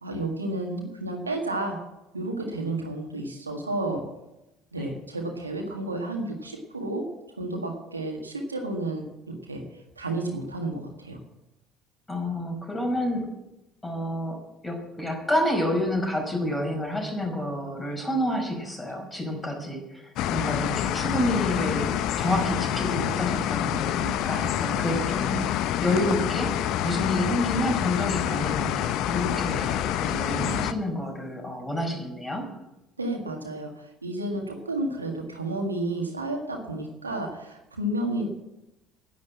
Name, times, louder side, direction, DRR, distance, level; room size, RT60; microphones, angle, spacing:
voice 1, 0.0-1.8 2.1-4.0 4.7-9.6 10.0-11.2 33.0-38.3, right 1 dB, 90° right, 2 dB, 1.8 m, -31 dB
voice 2, 12.1-13.3 13.8-14.4 14.6-32.5, left 1 dB, 15° left, 2 dB, 5.0 m, -29 dB
sound 1, 20.2-30.7, left 11 dB, 55° left, 0.7 m, -27 dB
10.5 x 9.6 x 8.5 m, 0.93 s
figure-of-eight pair, 60°, 0 cm